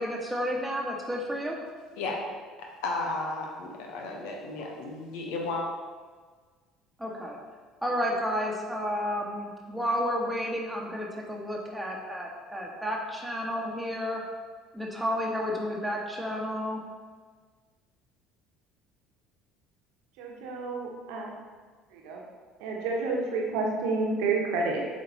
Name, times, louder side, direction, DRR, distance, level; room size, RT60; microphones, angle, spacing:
voice 1, 0.0-1.6 7.0-7.4 7.8-14.2 14.7-16.8, equal, 5° right, -2 dB, 1.6 m, -31 dB
voice 2, 2.6-5.6, left 3 dB, 60° left, 0 dB, 1.2 m, -34 dB
voice 3, 20.2-21.3 21.9-22.2 22.6-24.9, right 3 dB, 60° right, 0 dB, 1.2 m, -29 dB
7.7 x 5.1 x 4.2 m, 1.5 s
figure-of-eight pair, 60°, 0 cm